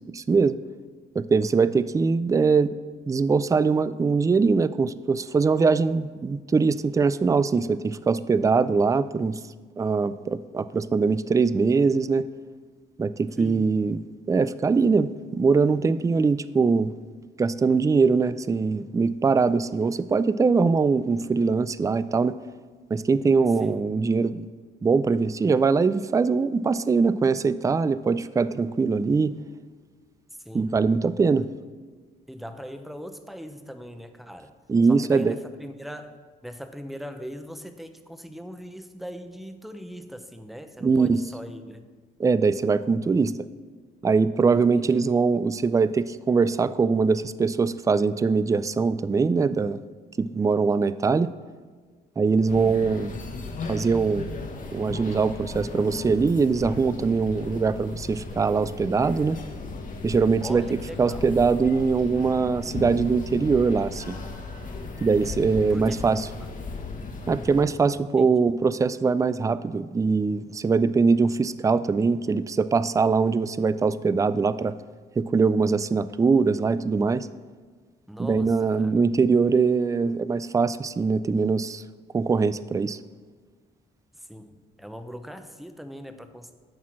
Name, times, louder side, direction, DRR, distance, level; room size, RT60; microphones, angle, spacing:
voice 1, 0.1-0.6 1.2-2.8 3.1-9.4 9.8-12.2 13.0-14.0 14.3-16.9 17.4-22.3 22.9-24.5 24.8-29.3 30.5-31.5 34.7-35.3 40.8-41.2 42.2-43.4 44.0-49.8 50.2-51.3 52.2-53.1 53.7-54.3 54.7-59.4 60.0-60.7 61.0-64.2 65.0-66.3 67.3-74.7 75.2-77.3 78.2-81.8 82.1-83.0, right 4 dB, 15° right, 15 dB, 0.3 m, -22 dB
voice 2, 13.4-13.7 23.6-23.8 30.4-30.7 32.3-34.5 34.9-36.2 36.4-41.8 44.5-45.0 60.4-61.3 65.7-65.9 67.9-68.3 78.1-78.9 84.3-86.5, equal, ahead, 8 dB, 0.8 m, -40 dB
sound 1, 52.5-67.6, left 3 dB, 45° left, 1.3 m, -36 dB
11.0 x 4.3 x 6.2 m, 1.5 s
supercardioid pair, 65°, 19 cm